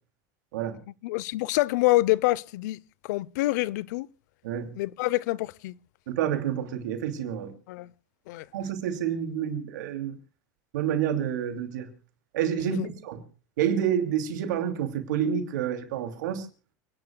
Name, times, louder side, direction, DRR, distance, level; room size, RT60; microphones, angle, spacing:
voice 1, 1.0-4.1 4.8-5.7 7.7-7.9 8.3-8.5 12.6-12.9, left 19 dB, 75° left, 0.6 m, -26 dB
voice 2, 6.1-7.5 8.5-10.1 10.7-11.9 12.3-13.2 13.6-16.5, right 9 dB, 85° right, 2.7 m, -28 dB
29.5 x 10.5 x 2.3 m
supercardioid pair, 115°, 10 cm